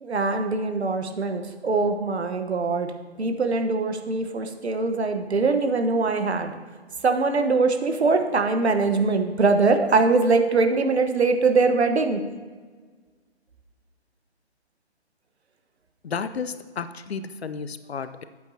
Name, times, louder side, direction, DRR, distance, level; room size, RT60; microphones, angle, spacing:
voice 1, 0.0-2.9 3.2-6.5 7.0-12.2, right 3 dB, 70° right, 6 dB, 1.2 m, -22 dB
voice 2, 16.0-18.2, left 6 dB, 65° left, 12 dB, 0.7 m, -32 dB
13.0 x 8.4 x 2.8 m, 1.5 s
figure-of-eight pair, 140°, 34 cm